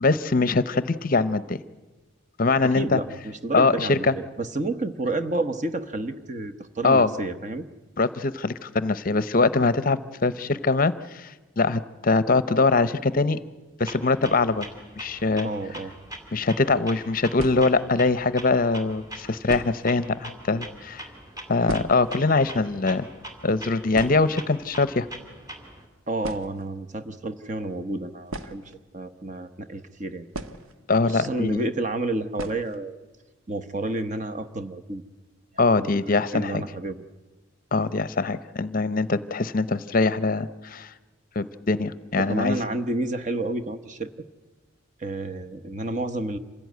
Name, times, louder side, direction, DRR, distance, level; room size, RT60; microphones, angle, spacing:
voice 1, 0.0-1.6 2.4-3.0 3.5-4.1 6.8-7.1 8.0-13.4 13.8-14.7 15.0-15.5 16.3-21.1 21.5-23.1 23.4-25.1 30.9-31.6 35.6-36.6 37.7-40.9 41.4-42.6, left 3 dB, 40° left, 16 dB, 0.7 m, -23 dB
voice 2, 2.6-7.7 15.4-15.9 26.1-30.3 31.0-33.0 33.5-35.0 35.8-35.9 36.2-37.0 42.2-44.1 45.0-46.4, right 2 dB, 35° right, 10 dB, 1.0 m, -30 dB
Clock, 13.9-25.9, right 1 dB, 15° right, 2.5 m, -42 dB
sound 1, 16.4-16.5 17.3-18.0 18.9-19.0 19.4-20.0 20.3-20.4 20.6-20.8 21.2-22.2 22.5-22.6 22.9-23.2 23.5-23.6 23.9-24.8 25.8-25.9 26.2-26.8 28.2-29.3 30.3-31.1 31.4-31.5 32.3-32.8 33.1-33.2 33.6-33.7 34.1-34.5, right 2 dB, 90° right, 1.3 m, -37 dB
26.5 x 16.0 x 9.3 m, 1.2 s
head